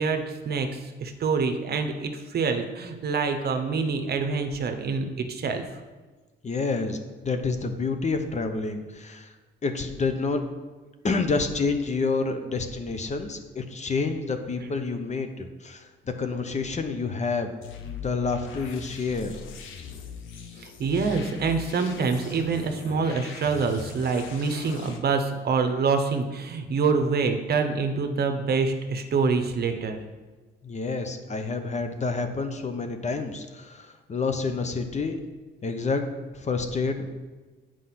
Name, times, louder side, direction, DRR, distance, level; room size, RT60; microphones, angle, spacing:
voice 1, 0.0-5.6 20.6-30.0, right 4 dB, 55° right, 6 dB, 1.0 m, -26 dB
voice 2, 6.4-7.0 7.2-9.3 9.6-10.5 11.0-17.5 17.8-19.4 30.6-35.2 35.6-36.1 36.3-37.1, left 4 dB, 35° left, 7 dB, 0.9 m, -28 dB
sound 1, 17.6-25.0, left 5 dB, 85° left, 0.9 m, -41 dB
7.7 x 4.9 x 5.8 m, 1.3 s
cardioid pair, 90°, 20 cm